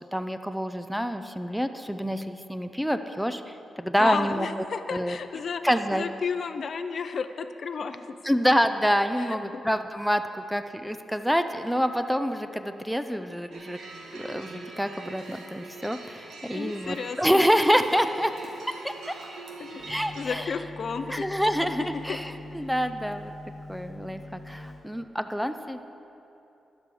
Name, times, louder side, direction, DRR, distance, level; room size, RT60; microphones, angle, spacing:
voice 1, 0.1-4.5 4.9-5.2 5.6-6.1 8.2-13.8 14.1-18.3 18.8-18.9 19.9-20.5 21.1-23.3 23.7-25.8, equal, ahead, 9 dB, 0.5 m, -27 dB
voice 2, 4.0-5.6 5.9-8.2 9.2-9.6 16.5-17.4 19.6-19.8 20.1-21.2 21.9-22.2, left 5 dB, 55° left, 9 dB, 0.5 m, -32 dB
sound 1, 13.5-20.3, right 3 dB, 90° right, 1.6 m, -43 dB
sound 2, 19.8-25.2, left 1 dB, 15° left, 2.3 m, -43 dB
12.0 x 11.0 x 4.9 m, 2.9 s
cardioid pair, 95°, 0 cm